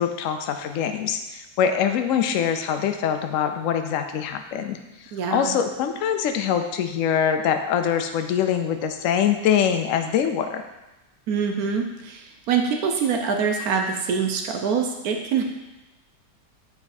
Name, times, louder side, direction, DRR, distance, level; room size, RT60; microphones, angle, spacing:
voice 1, 0.0-10.6, left 8 dB, 75° left, 7 dB, 0.7 m, -24 dB
voice 2, 5.1-5.6 11.3-15.4, right 6 dB, 70° right, 4 dB, 1.0 m, -25 dB
6.9 x 4.3 x 4.2 m, 1.0 s
omnidirectional pair, 1.9 m